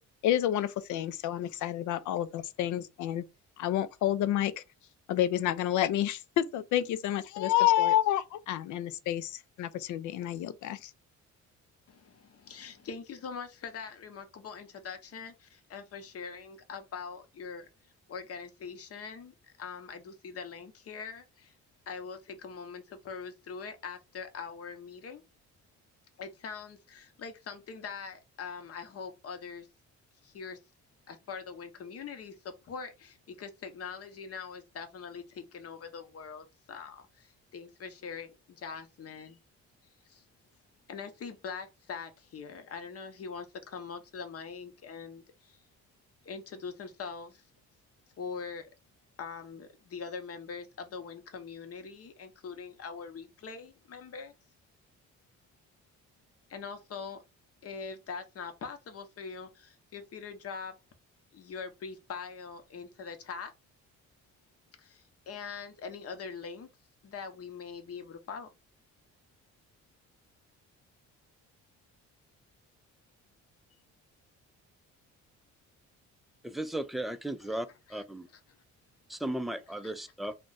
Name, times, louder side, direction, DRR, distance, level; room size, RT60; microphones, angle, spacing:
voice 1, 0.2-3.2 3.6-4.6 5.1-10.9, left 12 dB, 75° left, 0.5 m, -29 dB
voice 2, 11.9-17.7 18.1-21.5 21.9-25.2 26.2-29.7 30.2-30.6 31.1-39.4 40.0-40.2 40.9-45.6 46.2-47.4 48.2-48.7 49.2-54.3 56.5-57.2 57.6-60.8 61.3-63.5 64.8-66.7 67.0-68.5 77.9-78.0, left 5 dB, 50° left, 0.8 m, -43 dB
voice 3, 76.4-78.3 79.1-80.3, right 1 dB, ahead, 0.3 m, -36 dB
2.4 x 2.2 x 3.8 m
cardioid pair, 90°, 30 cm